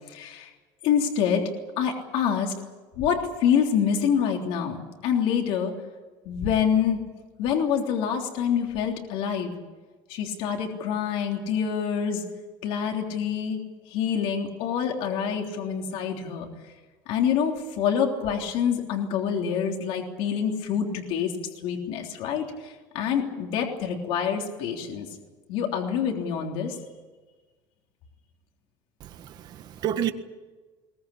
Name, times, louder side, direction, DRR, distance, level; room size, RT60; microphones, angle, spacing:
voice 1, 0.1-0.5 0.8-1.5 1.8-2.5 3.0-5.7 6.2-7.0 7.4-9.5 10.1-12.2 12.6-13.6 13.9-16.5 17.1-21.3 21.6-25.1 25.5-26.8, left 7 dB, 60° left, 2 dB, 3.5 m, -26 dB
voice 2, 29.0-30.1, right 10 dB, 40° right, 9 dB, 1.5 m, -30 dB
22.0 x 19.5 x 8.7 m, 1.3 s
cardioid pair, 165°, 10 cm